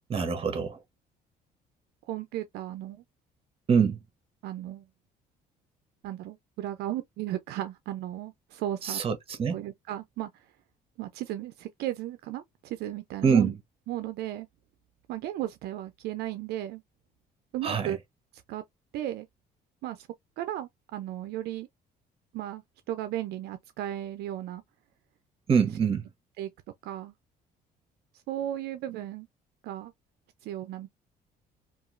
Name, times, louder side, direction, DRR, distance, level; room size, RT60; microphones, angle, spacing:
voice 1, 0.1-0.8 3.7-4.0 8.8-9.6 13.2-13.6 17.6-18.0 25.5-26.0, right 6 dB, 35° right, 0.8 m, -25 dB
voice 2, 2.1-3.0 4.4-4.8 6.0-9.0 9.5-10.3 11.0-13.5 13.9-14.5 15.1-16.8 17.5-18.0 18.5-18.6 18.9-19.3 19.8-20.1 20.4-21.7 22.3-24.6 26.4-26.5 26.8-27.1 28.3-29.3 29.6-29.9 30.4-30.9, right 13 dB, 75° right, 0.4 m, -35 dB
2.8 x 2.3 x 2.4 m
cardioid pair, 110°, 17 cm